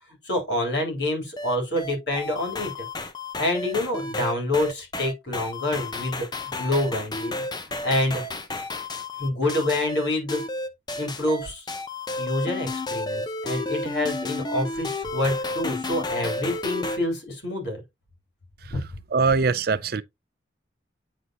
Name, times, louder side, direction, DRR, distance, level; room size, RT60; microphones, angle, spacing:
voice 1, 0.2-2.9 3.4-7.4 7.8-8.2 9.2-10.4 11.0-11.7 12.2-17.8 18.7-18.8, left 1 dB, 70° left, 3.5 m, -27 dB
sound 1, 1.4-17.0, left 2 dB, 25° left, 0.7 m, -32 dB
voice 2, 19.1-20.0, right 4 dB, 55° right, 0.5 m, -22 dB
9.3 x 4.0 x 2.9 m
head